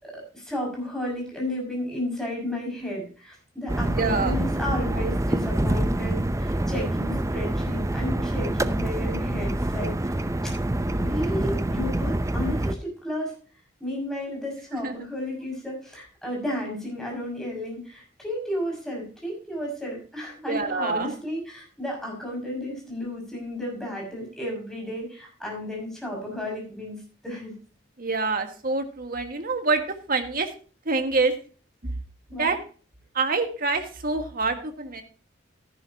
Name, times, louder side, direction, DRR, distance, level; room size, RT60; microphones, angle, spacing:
voice 1, 0.0-10.1 10.4-10.5 11.0-13.3 13.8-27.5 32.3-32.5, left 1 dB, 5° left, -2 dB, 6.1 m, -33 dB
sound 1, 3.7-12.7, right 1 dB, 15° right, 0.6 m, -26 dB
voice 2, 3.9-4.3 14.8-14.9 20.5-21.1 28.0-30.5 30.9-31.3 32.4-32.6 33.2-35.0, right 3 dB, 50° right, 6 dB, 1.7 m, -26 dB
13.5 x 11.0 x 2.8 m, 0.38 s
head